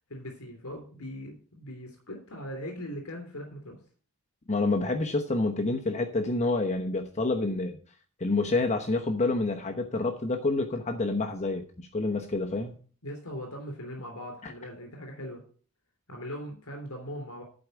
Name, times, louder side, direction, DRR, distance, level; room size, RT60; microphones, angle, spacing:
voice 1, 0.1-3.8 13.0-15.4 16.1-17.4, equal, 75° left, 2 dB, 3.4 m, -40 dB
voice 2, 4.5-7.8 8.2-12.8 14.4-14.5, left 2 dB, 30° left, 3 dB, 1.0 m, -28 dB
11.5 x 4.8 x 8.1 m, 0.43 s
head